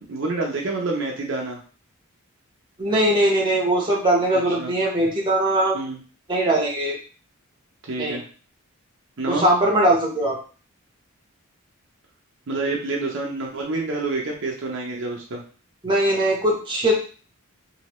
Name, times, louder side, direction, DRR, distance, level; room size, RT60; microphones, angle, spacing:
voice 1, 0.1-1.6 4.6-4.7 5.7-6.0 7.8-8.2 9.2-9.4 12.5-15.4, right 3 dB, 55° right, -1 dB, 0.6 m, -27 dB
voice 2, 2.8-5.8 6.3-7.0 8.0-8.2 9.3-10.4 15.8-16.9, right 1 dB, 20° right, -2 dB, 0.8 m, -20 dB
3.0 x 2.7 x 3.0 m, 0.39 s
head